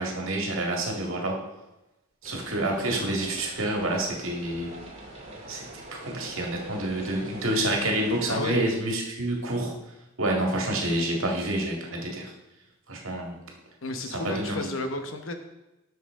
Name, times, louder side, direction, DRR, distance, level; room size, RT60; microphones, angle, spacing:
voice 1, 0.0-1.4 2.2-4.7 5.5-5.7 6.0-9.7 10.2-12.3 12.9-13.4 14.1-14.7, right 1 dB, 70° right, 0 dB, 1.9 m, -28 dB
sound 1, 2.2-8.4, right 1 dB, 30° right, 1.8 m, -44 dB
voice 2, 8.3-8.6 13.8-15.3, left 2 dB, 70° left, 6 dB, 1.0 m, -32 dB
12.5 x 6.0 x 3.7 m, 0.99 s
head